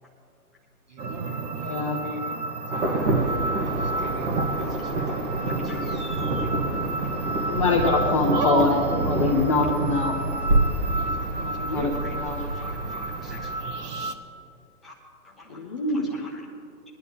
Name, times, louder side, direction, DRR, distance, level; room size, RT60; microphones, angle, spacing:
voice 1, 0.9-2.8 3.6-4.4 8.3-9.4 10.9-12.1, right 4 dB, 30° right, 3 dB, 0.8 m, -33 dB
sound 1, 1.0-14.1, right 2 dB, 80° right, 1.3 m, -32 dB
voice 2, 1.5-2.0 7.5-10.6 11.4-12.4 15.5-16.2, left 3 dB, 20° left, -1 dB, 0.7 m, -25 dB
Insect / Thunder / Rain, 2.7-13.6, right 2 dB, 50° right, 2.4 m, -27 dB
voice 3, 4.6-6.5 10.6-10.7 11.6-13.5 14.8-14.9 15.2-16.5, left 3 dB, ahead, -7 dB, 1.0 m, -48 dB
21.5 x 10.5 x 3.6 m, 2.5 s
hypercardioid pair, 160°, 47 cm